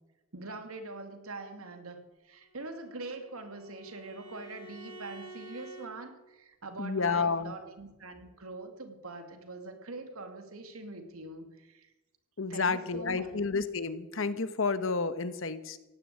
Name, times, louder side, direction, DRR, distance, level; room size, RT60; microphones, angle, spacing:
voice 1, 0.3-2.0 2.2-11.9 12.5-13.4, right 3 dB, 85° right, 6 dB, 2.5 m, -43 dB
Bowed string instrument, 2.4-5.9, right 2 dB, 70° right, 6.1 m, -49 dB
voice 2, 6.8-7.5 12.4-15.8, left 4 dB, 65° left, 12 dB, 1.1 m, -30 dB
17.0 x 10.0 x 8.7 m, 1.1 s
head